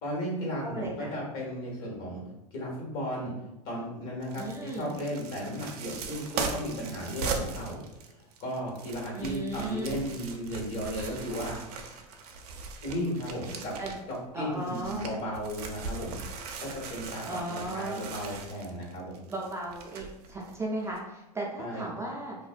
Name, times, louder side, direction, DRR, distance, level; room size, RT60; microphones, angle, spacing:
voice 1, 0.0-2.2 2.5-3.3 3.6-7.8 8.4-11.6 11.8-12.0 12.8-13.7 14.1-16.2 16.6-19.2 21.6-21.9, equal, 55° left, -2 dB, 1.1 m, -35 dB
voice 2, 0.6-1.1 4.4-4.9 9.1-10.0 13.8-14.0 14.3-15.1 17.2-18.0 19.3-22.4, right 2 dB, 15° right, -3 dB, 0.4 m, -36 dB
sound 1, 4.2-14.2 14.5-20.6 20.9-21.0, right 4 dB, 75° right, 0.4 m, -39 dB
2.5 x 2.1 x 2.4 m, 0.97 s
hypercardioid pair, 100°, 20 cm